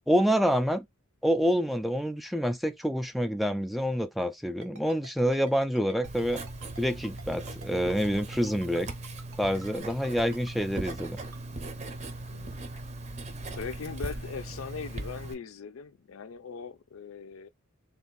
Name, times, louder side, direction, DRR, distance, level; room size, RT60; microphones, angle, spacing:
voice 1, 0.1-0.8 1.2-6.4 6.8-8.9 9.4-11.2, equal, ahead, 0.3 m, -27 dB
Ringtone, 4.6-11.4, right 3 dB, 80° right, 1.0 m, -49 dB
Writing, 6.0-15.3, right 2 dB, 35° right, 0.6 m, -39 dB
voice 2, 12.3-12.8 13.5-17.5, left 5 dB, 75° left, 0.4 m, -40 dB
3.4 x 2.5 x 3.8 m
head